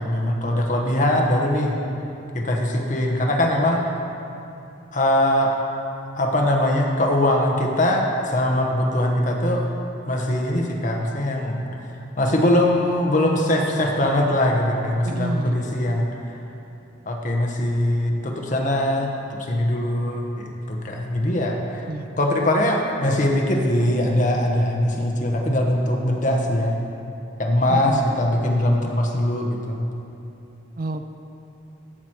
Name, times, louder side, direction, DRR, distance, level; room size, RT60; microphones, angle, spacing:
voice 1, 0.0-1.8 2.3-3.8 4.9-5.5 6.1-9.6 10.1-16.4 17.1-21.9 22.2-26.8 27.4-29.9, left 1 dB, 40° left, 1 dB, 1.1 m, -22 dB
voice 2, 15.0-15.7 21.9-22.1 27.7-28.0 30.8-31.1, right 2 dB, 45° right, 8 dB, 0.5 m, -29 dB
15.0 x 6.1 x 4.5 m, 2.7 s
head